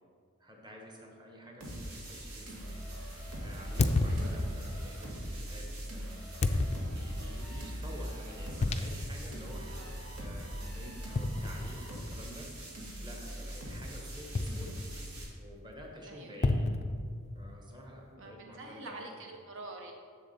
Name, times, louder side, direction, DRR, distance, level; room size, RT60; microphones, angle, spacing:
voice 1, 0.4-2.8 3.4-6.2 6.9-12.5 13.0-14.8 15.4-16.7 17.3-19.4, equal, 20° right, 0 dB, 1.1 m, -49 dB
sound 1, 1.6-15.2, equal, 80° right, 1.7 m, -41 dB
sound 2, 1.8-2.0 3.8-4.8 6.4-7.2 8.6-9.3 9.7-9.8 11.1-12.1 14.3-15.1 16.4-17.5, left 2 dB, 30° left, 0.4 m, -31 dB
voice 2, 4.1-4.5 9.7-9.9 16.1-16.4 18.2-19.9, right 2 dB, 60° right, 2 dB, 0.7 m, -46 dB
6.9 x 6.8 x 4.2 m, 2.1 s
head